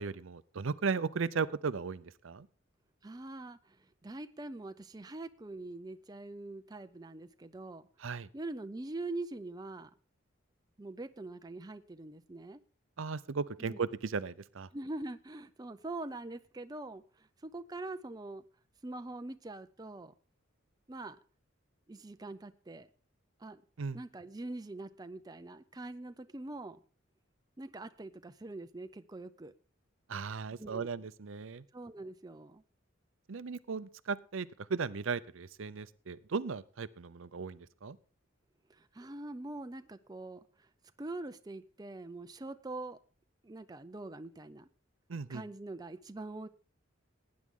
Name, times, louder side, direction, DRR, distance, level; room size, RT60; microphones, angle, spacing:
voice 1, 0.0-2.5 8.0-8.3 13.0-14.7 23.8-24.0 30.1-31.6 33.3-38.0 45.1-45.4, right 5 dB, 70° right, 16 dB, 0.6 m, -36 dB
voice 2, 3.0-3.6 4.0-7.8 8.3-9.9 10.8-12.6 13.6-13.8 14.7-18.4 18.8-20.1 20.9-21.2 21.9-22.9 23.4-23.6 23.9-26.8 27.6-29.5 30.6-30.9 31.7-32.6 38.7-40.4 41.0-43.0 43.4-44.7 45.3-46.5, right 2 dB, 20° right, 9 dB, 0.5 m, -43 dB
18.5 x 9.6 x 3.7 m, 0.38 s
head